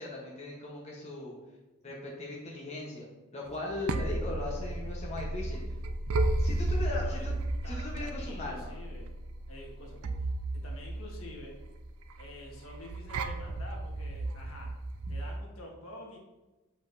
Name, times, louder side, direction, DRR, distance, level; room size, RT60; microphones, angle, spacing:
voice 1, 0.0-1.4 1.8-3.0 3.3-5.6 6.4-7.3 7.7-8.7 15.1-15.2, left 2 dB, 30° left, -3 dB, 1.0 m, -39 dB
sound 1, 3.5-15.4, right 2 dB, 80° right, 0.5 m, -34 dB
voice 2, 6.8-7.2 7.6-9.1 9.5-10.3 10.6-11.5 12.2-14.7 15.1-16.2, left 1 dB, 70° left, 0 dB, 1.4 m, -48 dB
7.2 x 5.4 x 2.7 m, 1.1 s
head